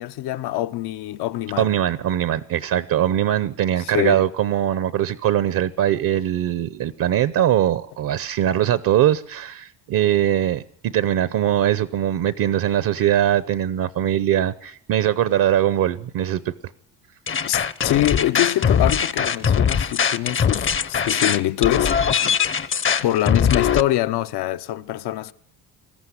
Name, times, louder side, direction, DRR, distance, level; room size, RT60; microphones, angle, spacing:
voice 1, 0.0-1.7 3.8-4.2 17.4-21.9 23.0-25.3, left 14 dB, 75° left, 0.9 m, -24 dB
voice 2, 1.6-16.5, right 11 dB, 60° right, 0.9 m, -21 dB
sound 1, 17.3-23.8, left 7 dB, 30° left, 0.8 m, -21 dB
21.0 x 14.0 x 9.9 m
cardioid pair, 115°, 39 cm